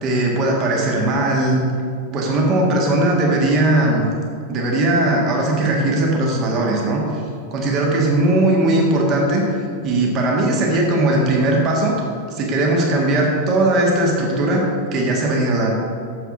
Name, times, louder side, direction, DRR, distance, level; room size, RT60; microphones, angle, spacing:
voice 1, 0.0-1.6 2.1-4.0 4.5-7.0 7.5-9.4 9.8-11.9 12.3-15.7, right 2 dB, 35° right, -1 dB, 1.6 m, -18 dB
7.2 x 6.8 x 4.9 m, 2.2 s
figure-of-eight pair, 90°, 0 cm